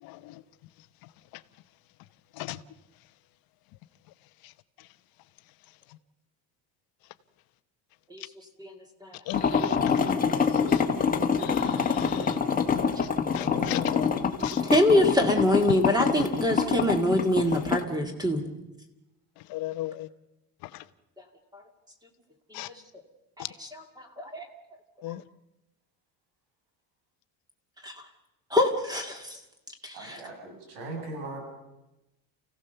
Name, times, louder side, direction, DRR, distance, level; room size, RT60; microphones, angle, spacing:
voice 1, 0.0-0.4 2.4-2.6 4.4-4.5 9.3-10.1 10.5-10.8 11.4-12.4 12.7-14.6 19.5-20.1 20.6-20.8 22.5-22.7 23.4-23.5 25.0-25.2, left 16 dB, 60° left, 13 dB, 1.0 m, -37 dB
sound 1, 9.3-17.8, left 6 dB, 20° left, 1.5 m, -26 dB
voice 2, 14.6-18.4 21.2-21.3 21.5-21.6 23.4-24.5 27.8-28.0 28.5-29.4 29.8-30.2, left 1 dB, 10° right, 4 dB, 2.0 m, -25 dB
voice 3, 29.9-31.4, right 2 dB, 80° right, 2 dB, 6.8 m, -39 dB
29.0 x 16.5 x 6.9 m, 0.98 s
cardioid pair, 170°, 41 cm